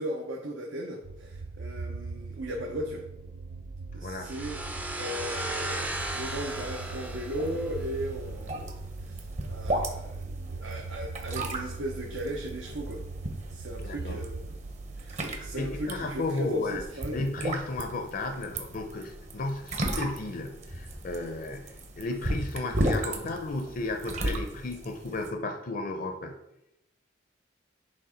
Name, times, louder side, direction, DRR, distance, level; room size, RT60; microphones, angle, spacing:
voice 1, 0.0-3.0 3.9-4.6 5.0-8.7 9.1-13.0 13.5-14.4 15.0-17.2, equal, 80° right, 0 dB, 0.9 m, -36 dB
sound 1, 1.0-16.2, right 3 dB, 65° right, 0.4 m, -40 dB
voice 2, 3.9-4.3 13.8-14.2 15.2-16.8 17.1-26.3, left 2 dB, 45° left, 5 dB, 0.6 m, -34 dB
sound 2, 4.3-8.0, right 1 dB, 10° right, 0.5 m, -36 dB
sound 3, 5.6-25.3, right 1 dB, 35° right, 0.9 m, -36 dB
7.1 x 3.6 x 5.0 m, 0.86 s
head